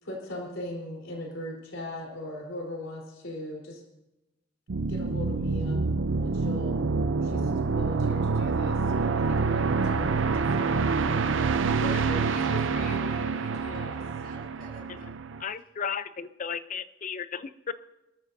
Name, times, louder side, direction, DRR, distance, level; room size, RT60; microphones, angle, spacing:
voice 1, 0.0-3.8 4.9-5.8 6.2-6.8 7.2-10.9 11.8-14.0, left 1 dB, 80° left, -1 dB, 3.9 m, -39 dB
sound 1, 4.7-15.4, right 4 dB, 75° right, 0.6 m, -27 dB
voice 2, 11.0-11.7 13.7-15.1, right 2 dB, 50° right, -2 dB, 6.0 m, -48 dB
voice 3, 15.4-17.7, left 7 dB, 40° left, 13 dB, 0.6 m, -34 dB
26.0 x 13.5 x 2.7 m, 0.97 s
head